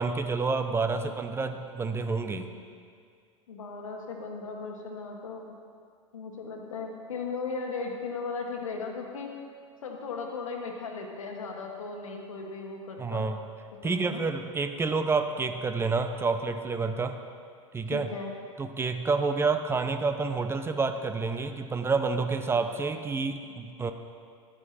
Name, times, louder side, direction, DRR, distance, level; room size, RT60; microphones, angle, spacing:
voice 1, 0.0-2.5 13.0-13.4 13.8-17.2 17.7-18.1 18.6-23.9, right 4 dB, 15° right, 7 dB, 0.7 m, -28 dB
voice 2, 3.5-5.5 6.1-9.3 9.8-13.3 13.8-14.2 17.9-18.3, left 4 dB, 75° left, 2 dB, 1.5 m, -37 dB
11.5 x 9.5 x 4.3 m, 2.1 s
figure-of-eight pair, 90°, 17 cm